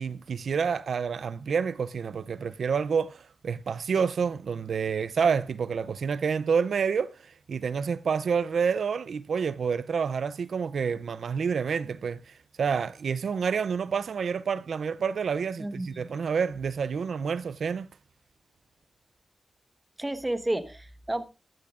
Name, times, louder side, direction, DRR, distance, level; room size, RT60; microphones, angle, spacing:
voice 1, 0.0-17.9, right 6 dB, 80° right, 0.4 m, -28 dB
voice 2, 15.6-16.1 20.0-21.2, right 1 dB, 15° right, 1.1 m, -31 dB
14.5 x 12.0 x 2.4 m
wide cardioid pair, 110°, 0 cm